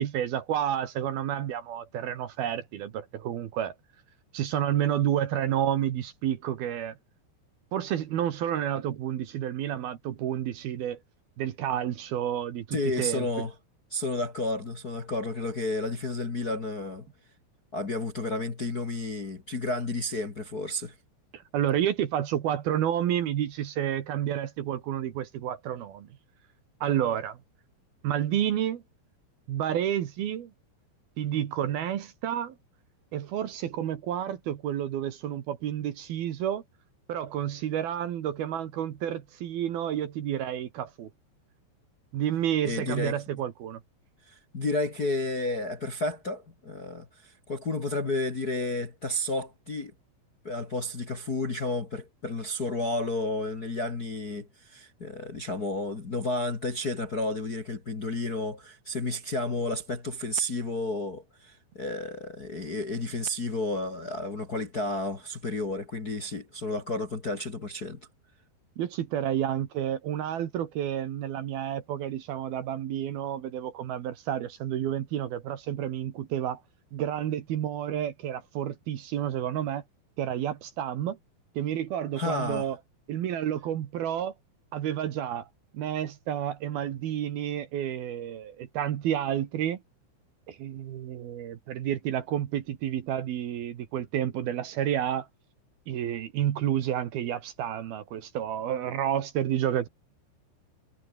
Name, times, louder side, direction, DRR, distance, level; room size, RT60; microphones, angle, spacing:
voice 1, 0.0-3.7 4.3-7.0 7.7-11.0 11.4-13.3 21.3-26.1 26.8-27.4 28.0-28.8 29.5-30.5 31.2-32.5 33.1-36.6 37.1-41.1 42.1-43.8 68.8-76.6 76.9-79.8 80.2-81.2 81.6-82.8 83.1-84.3 84.7-85.5 85.7-89.8 90.5-95.3 95.9-99.9, right 10 dB, 65° right, 3.0 m, -30 dB
voice 2, 12.7-13.5 13.9-17.1 17.7-20.9 42.6-43.2 44.3-49.9 50.4-68.0 82.1-82.7, left 2 dB, 40° left, 1.3 m, -31 dB
omnidirectional pair, 5.6 m